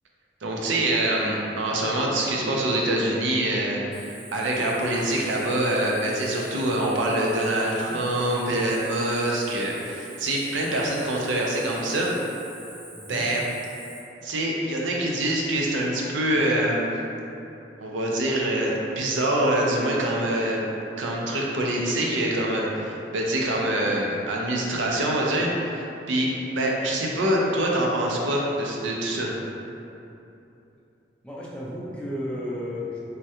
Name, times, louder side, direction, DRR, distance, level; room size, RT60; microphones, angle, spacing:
voice 1, 0.4-12.1 13.1-13.4 14.2-16.9 17.8-20.7 21.0-29.3, right 1 dB, 90° right, -2 dB, 0.5 m, -25 dB
Cricket, 3.9-14.0, right 1 dB, 40° right, 0.6 m, -45 dB
voice 2, 12.9-13.3 31.2-33.0, left 1 dB, 5° left, -6 dB, 0.3 m, -33 dB
3.4 x 2.2 x 2.8 m, 2.8 s
head